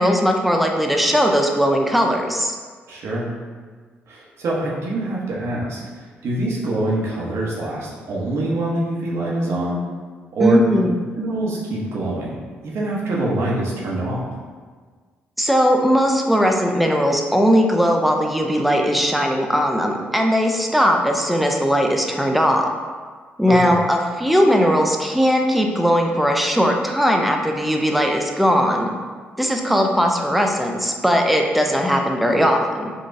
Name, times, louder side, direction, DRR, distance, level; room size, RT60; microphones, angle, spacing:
voice 1, 0.0-2.5 10.4-10.9 15.4-22.7 23.4-28.9 29.4-32.9, equal, ahead, 2 dB, 0.4 m, -18 dB
voice 2, 2.9-3.3 4.1-9.8 10.3-10.6 11.1-12.4 12.6-14.3 23.6-23.8, right 2 dB, 65° right, -4 dB, 0.8 m, -24 dB
3.8 x 2.3 x 2.5 m, 1.5 s
supercardioid pair, 55°, 5 cm